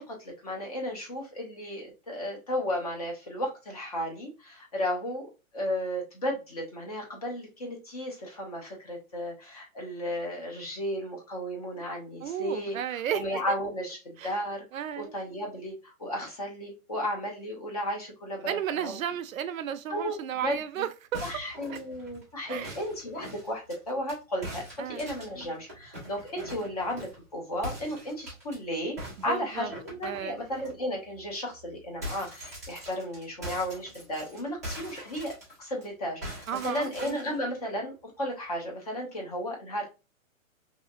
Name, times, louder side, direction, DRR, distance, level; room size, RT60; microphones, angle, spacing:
voice 1, 0.0-12.8 13.1-14.6 15.0-18.9 19.9-20.2 20.4-20.6 21.2-29.0 29.2-39.9, equal, 30° left, 0.6 m, -34 dB
voice 2, 12.2-13.6 14.2-14.3 14.7-15.1 18.5-21.3 21.7-21.8 22.5-22.8 24.8-25.0 29.3-29.7 30.0-30.4 36.5-36.9, right 10 dB, 75° right, 0.5 m, -33 dB
sound 1, 21.1-24.2 24.4-27.2 27.6-28.6 29.0-30.7 31.1-31.3 31.6-35.8 36.2-37.4, equal, 15° right, 0.4 m, -42 dB
2.8 x 2.7 x 2.4 m
hypercardioid pair, 170°, 41 cm